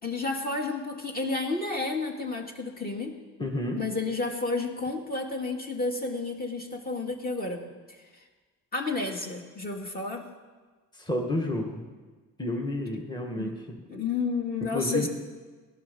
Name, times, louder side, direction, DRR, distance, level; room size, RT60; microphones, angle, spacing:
voice 1, 0.0-3.2 3.8-7.6 8.0-8.1 8.7-10.2 13.4-13.6 13.9-15.1, left 3 dB, 30° left, 2 dB, 2.6 m, -31 dB
voice 2, 3.4-3.8 10.9-11.8 12.4-13.5 14.7-15.1, left 1 dB, 15° left, 1 dB, 1.9 m, -30 dB
16.5 x 11.5 x 7.1 m, 1.3 s
cardioid pair, 90°, 30 cm